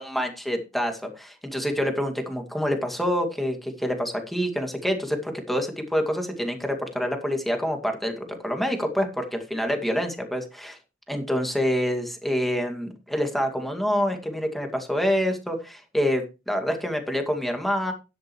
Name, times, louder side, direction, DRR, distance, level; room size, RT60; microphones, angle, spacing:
voice 1, 0.0-10.8 11.1-17.9, equal, ahead, 3 dB, 2.2 m, -27 dB
13.0 x 10.5 x 3.2 m, 0.29 s
head